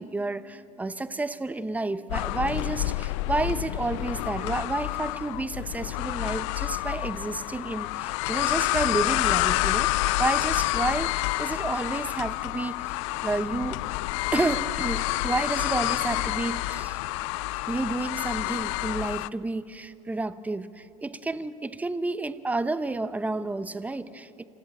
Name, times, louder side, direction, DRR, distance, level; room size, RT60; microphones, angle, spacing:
voice 1, 0.0-9.9 10.2-12.9 13.2-13.8 14.3-17.0 17.7-24.5, right 2 dB, 10° right, 14 dB, 0.8 m, -30 dB
sound 1, 2.1-19.3, left 21 dB, 60° left, 0.4 m, -28 dB
26.0 x 14.0 x 8.9 m, 2.9 s
hypercardioid pair, 80°, 18 cm